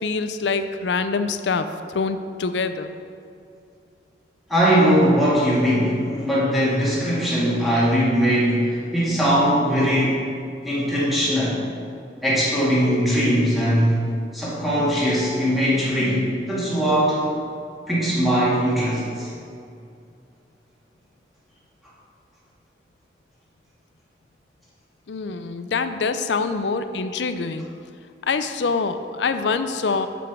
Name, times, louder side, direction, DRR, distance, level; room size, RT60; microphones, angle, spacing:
voice 1, 0.0-1.7 1.9-2.9 25.1-27.7 28.2-30.1, left 4 dB, 90° left, 10 dB, 0.5 m, -25 dB
voice 2, 4.5-10.2 10.6-11.6 12.2-14.0 14.3-17.2 17.9-19.3, equal, ahead, -9 dB, 2.2 m, -20 dB
7.1 x 5.9 x 6.1 m, 2.4 s
head